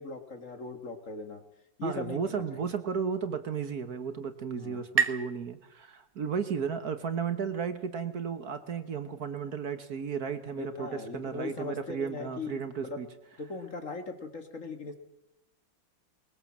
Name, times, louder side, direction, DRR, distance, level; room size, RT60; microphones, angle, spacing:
voice 1, 0.0-1.4 1.8-2.7 4.5-4.8 10.6-12.6 12.9-13.0 13.4-15.0, left 3 dB, 40° left, 7 dB, 2.0 m, -39 dB
voice 2, 1.8-13.1, right 6 dB, 55° right, 10 dB, 1.6 m, -34 dB
sound 1, 3.5-6.9, right 5 dB, 25° right, 1.0 m, -35 dB
21.0 x 20.0 x 7.4 m, 0.90 s
omnidirectional pair, 2.1 m